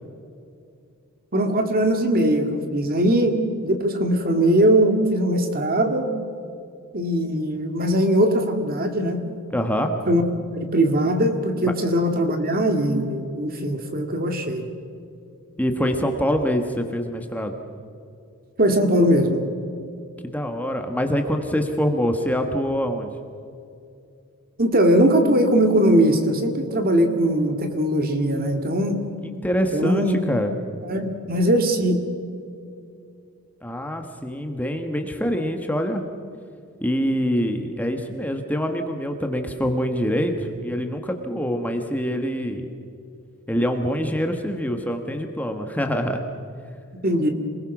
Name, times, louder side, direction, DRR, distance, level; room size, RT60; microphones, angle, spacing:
voice 1, 1.3-3.4 3.6-6.1 6.9-9.2 10.1-10.2 10.6-14.7 18.6-19.4 24.6-29.0 29.7-30.2 30.8-32.0 47.0-47.3, right 1 dB, 40° right, 5 dB, 2.2 m, -20 dB
voice 2, 9.5-9.9 11.6-11.7 15.6-17.5 20.2-23.1 29.2-30.5 33.6-36.0 36.8-42.7 43.5-46.2, equal, 5° left, 4 dB, 1.3 m, -25 dB
27.5 x 20.5 x 6.1 m, 2.5 s
head